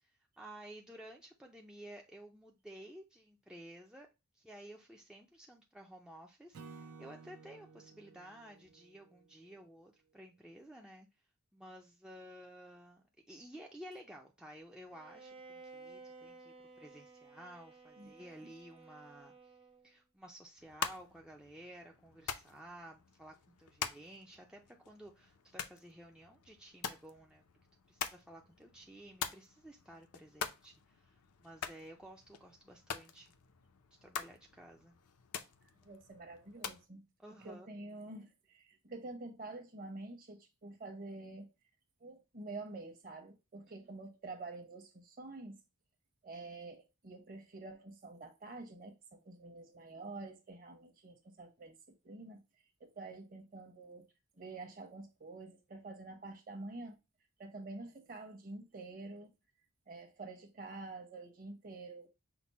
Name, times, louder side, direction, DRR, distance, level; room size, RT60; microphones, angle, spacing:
voice 1, 0.0-4.1 4.3-11.1 11.5-19.5 19.8-27.4 27.9-33.3 34.0-35.0 37.2-37.7 43.7-43.9, right 1 dB, 5° right, 0.4 m, -54 dB
Acoustic guitar / Strum, 6.5-9.9, right 4 dB, 70° right, 0.6 m, -55 dB
Bowed string instrument, 14.9-20.0, right 4 dB, 25° right, 0.8 m, -55 dB
sound 1, 20.6-36.9, left 7 dB, 75° left, 0.6 m, -46 dB
voice 2, 35.6-37.0 37.4-41.5 42.0-45.6 46.2-52.4 52.8-54.1 54.3-57.0 57.4-59.3 59.9-62.1, right 2 dB, 40° right, 1.0 m, -48 dB
5.9 x 2.1 x 4.1 m
head